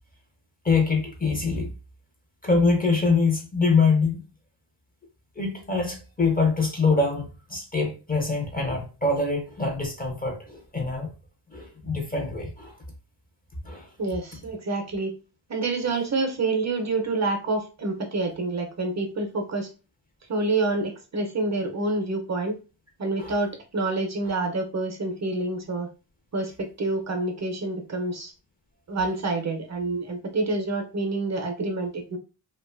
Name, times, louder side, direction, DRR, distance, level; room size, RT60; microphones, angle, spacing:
voice 1, 0.6-1.7 2.4-4.2 5.4-11.1 11.5-12.7 13.6-13.9 23.2-23.4, left 4 dB, 20° left, 0.5 m, -24 dB
voice 2, 14.0-15.1 15.5-19.7 20.3-22.5 23.0-25.9 26.3-28.3 28.9-32.2, right 2 dB, 40° right, 0.5 m, -27 dB
2.5 x 2.2 x 2.4 m
wide cardioid pair, 110°, 42 cm